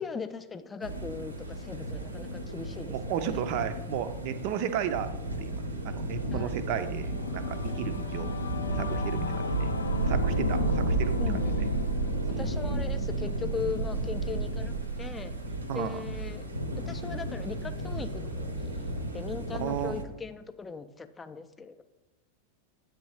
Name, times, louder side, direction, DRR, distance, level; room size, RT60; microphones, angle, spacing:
voice 1, 0.0-2.9 6.3-6.6 11.2-11.6 12.3-15.3 15.7-16.5 16.7-18.8 19.1-21.8, left 5 dB, 15° left, 10 dB, 0.4 m, -39 dB
sound 1, 0.8-20.0, right 2 dB, 80° right, 0.7 m, -32 dB
voice 2, 2.9-5.1 5.4-8.4 8.7-9.7 10.0-11.7 12.3-12.7 15.7-16.0 19.5-19.9, right 9 dB, 45° right, 10 dB, 0.5 m, -34 dB
Singing / Musical instrument, 6.4-16.1, left 3 dB, 75° left, 0.4 m, -38 dB
8.5 x 3.1 x 4.8 m, 1.1 s
figure-of-eight pair, 90°, 0 cm